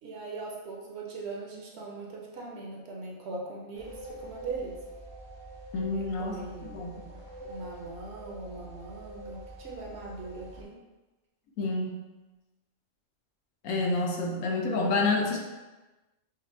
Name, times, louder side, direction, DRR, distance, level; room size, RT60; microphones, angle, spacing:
voice 1, 0.0-4.7 5.9-6.8 7.4-10.8, right 3 dB, 65° right, -2 dB, 0.8 m, -40 dB
sound 1, 3.8-10.6, right 1 dB, 40° right, 0.4 m, -45 dB
voice 2, 5.7-6.3 6.7-7.1 11.6-12.0 13.6-15.4, left 3 dB, 85° left, 0 dB, 1.1 m, -28 dB
5.2 x 2.1 x 2.5 m, 1.1 s
omnidirectional pair, 1.3 m